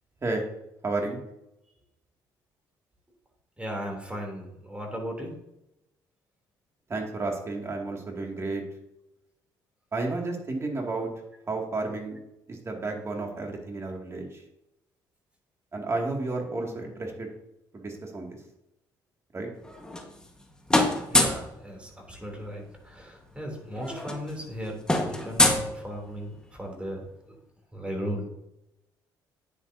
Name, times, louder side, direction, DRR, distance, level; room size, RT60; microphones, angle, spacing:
voice 1, 0.8-1.2 6.9-8.6 9.9-11.1 11.5-12.2 12.5-14.4 15.7-17.3 17.7-18.4 19.3-19.5, right 3 dB, 30° right, 1 dB, 2.4 m, -32 dB
voice 2, 3.6-5.3 21.1-27.4 27.7-28.3, equal, 15° right, 1 dB, 3.2 m, -36 dB
sound 1, 19.6-20.4 20.7-21.5 22.9-23.0 23.2-23.4 23.7-26.3, left 1 dB, 10° left, 1.5 m, -25 dB
9.7 x 8.5 x 2.8 m, 0.86 s
cardioid pair, 80°, 9 cm